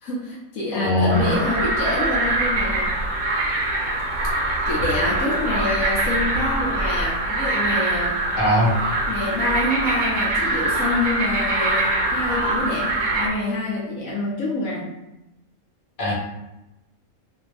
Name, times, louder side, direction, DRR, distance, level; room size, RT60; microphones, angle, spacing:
voice 1, 0.0-3.0 4.4-8.2 9.1-14.9, left 1 dB, 75° left, -5 dB, 1.1 m, -26 dB
voice 2, 0.7-1.3 8.4-8.8 16.0-16.1, left 1 dB, 40° left, -7 dB, 1.2 m, -20 dB
sound 1, 1.1-13.3, right 2 dB, 60° right, 0.5 m, -23 dB
2.8 x 2.5 x 3.1 m, 0.91 s
omnidirectional pair, 1.5 m